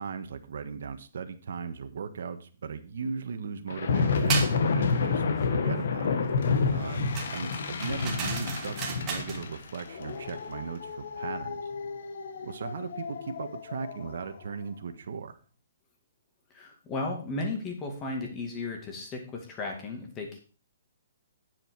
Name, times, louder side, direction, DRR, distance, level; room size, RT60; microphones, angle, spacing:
voice 1, 0.0-5.2 5.5-6.2 6.7-11.7 12.4-15.4, right 6 dB, 65° right, 8 dB, 1.3 m, -38 dB
sound 1, 3.7-14.3, left 4 dB, 60° left, 1.4 m, -30 dB
sound 2, 4.3-4.6 7.2-9.4, right 6 dB, 20° right, 1.8 m, -34 dB
voice 2, 16.5-20.4, left 2 dB, 15° left, 2 dB, 2.2 m, -35 dB
10.0 x 7.9 x 4.7 m, 0.37 s
hypercardioid pair, 170°, 0 cm